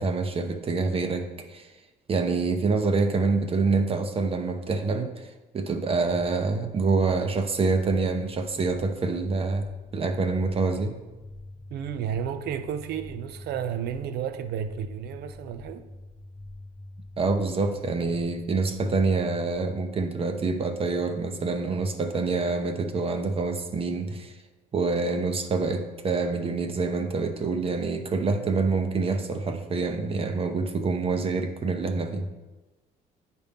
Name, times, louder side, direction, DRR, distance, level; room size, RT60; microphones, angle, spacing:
voice 1, 0.0-1.7 2.1-5.3 5.5-9.7 9.9-10.9 17.2-24.3 24.7-32.3, right 4 dB, 35° right, 0.7 m, -26 dB
sound 1, 6.1-19.8, left 2 dB, 15° left, 1.0 m, -45 dB
voice 2, 11.7-15.8, right 9 dB, 70° right, 0.6 m, -32 dB
9.2 x 4.3 x 3.5 m
cardioid pair, 110°, 17 cm